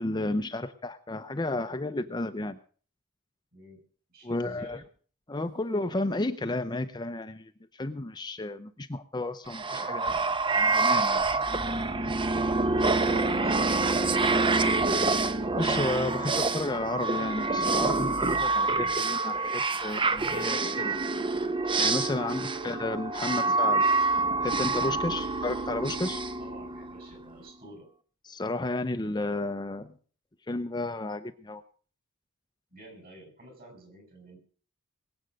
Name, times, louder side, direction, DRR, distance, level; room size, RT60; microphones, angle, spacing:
voice 1, 0.0-2.6 4.2-4.8 5.3-10.1 10.5-11.3 15.6-18.1 18.4-20.9 21.8-23.8 24.4-26.2 28.3-29.9 30.5-31.6, left 2 dB, 20° left, 8 dB, 0.7 m, -32 dB
voice 2, 3.5-3.8 4.1-4.8 22.2-22.7 24.9-25.3 26.4-27.9 32.7-34.4, right 1 dB, 40° right, 4 dB, 7.0 m, -50 dB
sound 1, 9.5-27.1, right 3 dB, 20° right, 0.8 m, -27 dB
21.5 x 8.0 x 6.4 m, 0.43 s
head